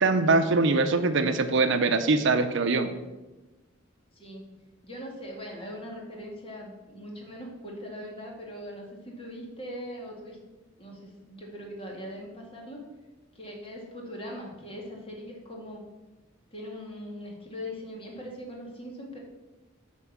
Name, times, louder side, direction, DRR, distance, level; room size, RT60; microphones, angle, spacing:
voice 1, 0.0-2.9, right 3 dB, 65° right, 9 dB, 0.6 m, -23 dB
voice 2, 4.8-10.4 10.8-12.8 13.3-15.8 16.5-19.2, equal, 30° left, -1 dB, 2.1 m, -40 dB
8.5 x 4.4 x 7.2 m, 1.1 s
head